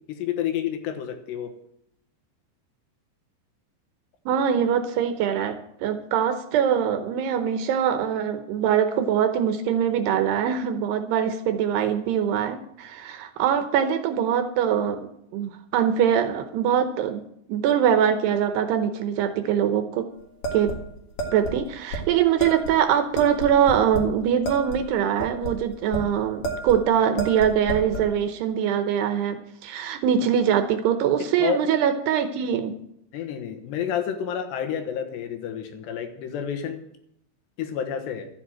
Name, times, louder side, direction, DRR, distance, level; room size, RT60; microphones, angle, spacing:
voice 1, 0.1-1.5 31.4-31.6 33.1-36.8 37.6-38.3, left 8 dB, 70° left, 6 dB, 3.4 m, -29 dB
voice 2, 4.3-17.2 17.5-20.1 20.5-20.7 21.3-32.8, right 8 dB, 75° right, 8 dB, 2.7 m, -23 dB
sound 1, 20.4-21.6 21.9-22.0 22.4-22.7 23.2-24.1 24.4-26.1 26.4-26.8 27.2-28.1, right 2 dB, 55° left, 1.7 m, -31 dB
13.0 x 8.2 x 7.6 m, 0.76 s
omnidirectional pair, 5.3 m